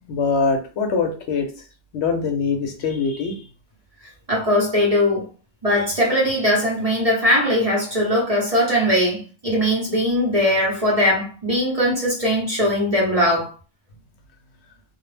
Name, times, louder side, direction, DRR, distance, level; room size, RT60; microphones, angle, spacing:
voice 1, 0.1-1.5 1.9-3.4, left 4 dB, 70° left, 0.8 m, -23 dB
voice 2, 4.3-5.3 5.6-13.5, equal, 40° right, 0.6 m, -20 dB
2.3 x 2.0 x 3.1 m
omnidirectional pair, 1.2 m